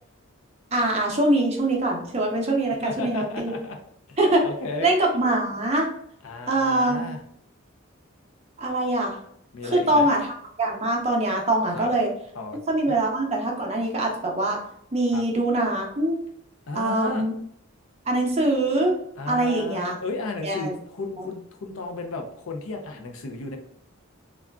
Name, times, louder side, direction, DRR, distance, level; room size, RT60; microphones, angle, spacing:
voice 1, 0.7-3.5 4.2-4.4 4.8-5.9 6.5-7.1 8.6-9.2 9.7-10.3 10.6-12.1 12.7-14.6 14.9-16.2 16.7-17.3 18.1-18.9 19.3-19.9 20.4-20.7, right 1 dB, 30° right, 0 dB, 0.6 m, -23 dB
voice 2, 2.8-3.8 4.1-4.2 4.4-4.9 6.2-7.2 9.5-10.1 11.7-11.9 12.3-12.6 12.9-13.0 15.1-15.2 16.7-17.3 19.2-23.6, left 3 dB, 75° left, 4 dB, 0.5 m, -33 dB
3.6 x 2.3 x 2.2 m, 0.68 s
head